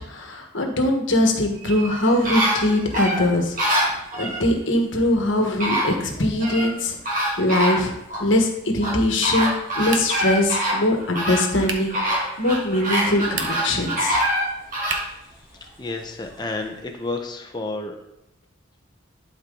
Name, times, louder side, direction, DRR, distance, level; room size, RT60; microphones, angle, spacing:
voice 1, 0.1-7.9 8.2-14.2, left 1 dB, 65° left, 3 dB, 1.4 m, -22 dB
sound 1, 1.6-4.4 5.2-5.3 5.6-6.7 7.0-8.3 8.8-15.1 15.5-15.6, equal, 40° right, 1.8 m, -25 dB
sound 2, 9.9-10.4 11.6-12.0 13.2-13.8 14.9-15.3, right 5 dB, 65° right, 1.0 m, -31 dB
voice 2, 14.9-15.3 15.6-18.0, left 2 dB, 20° left, 3 dB, 0.9 m, -31 dB
11.5 x 4.6 x 3.9 m, 0.85 s
head